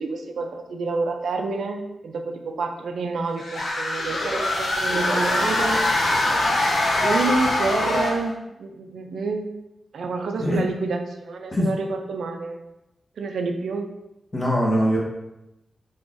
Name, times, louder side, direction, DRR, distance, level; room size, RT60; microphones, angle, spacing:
voice 1, 0.0-5.8 7.0-9.5 9.9-12.6 13.2-13.9, right 3 dB, 85° right, 4 dB, 0.4 m, -28 dB
sound 1, 3.4-8.3, left 1 dB, 75° left, 0.7 m, -23 dB
voice 2, 14.3-15.0, equal, 35° left, -4 dB, 1.1 m, -21 dB
3.8 x 3.4 x 2.5 m, 0.91 s
wide cardioid pair, 110°, 0 cm